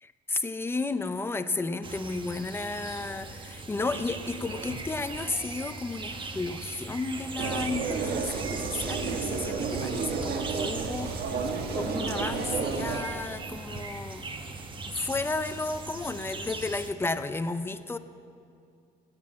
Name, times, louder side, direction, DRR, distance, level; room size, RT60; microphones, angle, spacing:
voice 1, 0.0-14.6 14.9-18.0, left 3 dB, 15° left, 11 dB, 0.6 m, -33 dB
sound 1, 1.8-16.9, right 3 dB, 30° right, 1.2 m, -39 dB
sound 2, 7.4-13.0, right 5 dB, 65° right, 1.6 m, -31 dB
14.5 x 9.4 x 8.6 m, 2.4 s
cardioid pair, 110°, 17 cm